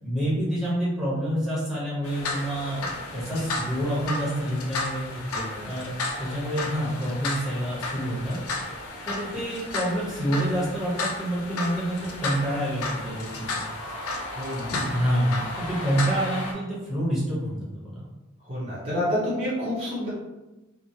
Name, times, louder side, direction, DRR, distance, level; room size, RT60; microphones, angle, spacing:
voice 1, 0.0-5.1 5.6-5.9 6.2-8.4 9.1-13.6 14.8-18.1, equal, ahead, -8 dB, 0.9 m, -27 dB
sound 1, 2.0-16.5, left 2 dB, 90° left, 0.5 m, -33 dB
voice 2, 5.3-5.7 14.4-14.8 18.5-20.1, left 1 dB, 30° right, -8 dB, 0.6 m, -29 dB
2.9 x 2.1 x 2.6 m, 1.1 s
head